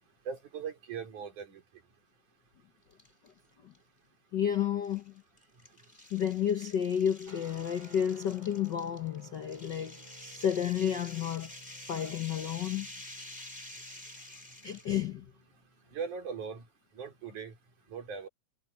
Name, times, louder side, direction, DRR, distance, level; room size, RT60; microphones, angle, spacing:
voice 1, 0.3-1.6 15.9-16.7 16.9-17.6 17.9-18.3, right 6 dB, 85° right, 5.6 m, -39 dB
sound 1, 2.9-3.3 3.7-3.8 4.8-15.0, left 1 dB, 10° left, 5.5 m, -49 dB
voice 2, 4.3-5.1 6.1-11.5 11.9-12.9 14.6-15.2, left 9 dB, 65° left, 1.1 m, -31 dB
sound 2, 7.3-16.2, right 1 dB, 55° right, 8.7 m, -57 dB
omnidirectional pair, 3.4 m